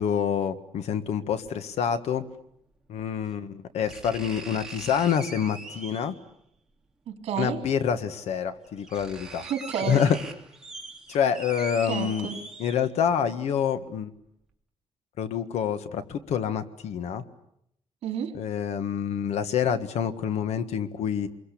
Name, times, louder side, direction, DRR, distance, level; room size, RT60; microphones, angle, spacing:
voice 1, 0.0-2.2 2.9-6.1 7.4-9.4 9.9-10.2 11.1-12.3 12.6-14.1 15.2-17.2 18.3-21.3, left 8 dB, 70° left, 10 dB, 1.7 m, -27 dB
sound 1, 1.4-1.5 3.0-3.1 3.9-6.2 7.6-7.7 8.3-8.4 8.6-13.1 13.5-13.6, right 3 dB, 5° right, 2.7 m, -41 dB
voice 2, 7.1-7.6 9.4-10.0 11.8-12.4 18.0-18.3, right 8 dB, 65° right, 4 dB, 4.2 m, -30 dB
27.0 x 23.0 x 8.7 m, 0.76 s
cardioid pair, 180°, 11 cm